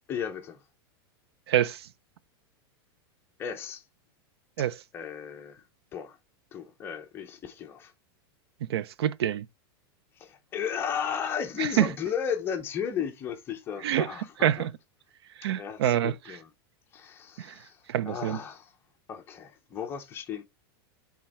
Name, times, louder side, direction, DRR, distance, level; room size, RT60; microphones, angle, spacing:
voice 1, 0.1-0.6 3.4-3.8 4.6-4.7 4.9-5.6 5.9-6.2 6.5-7.9 10.2-14.7 15.6-16.5 16.9-18.7 19.1-20.4, left 7 dB, 15° left, 0.7 m, -35 dB
voice 2, 1.5-1.9 4.6-4.8 8.7-9.5 11.6-11.9 13.8-14.1 14.4-14.7 15.4-16.1 17.4-17.6 17.9-18.4, right 11 dB, 85° right, 0.6 m, -26 dB
7.4 x 3.6 x 4.3 m
supercardioid pair, 170°, 13 cm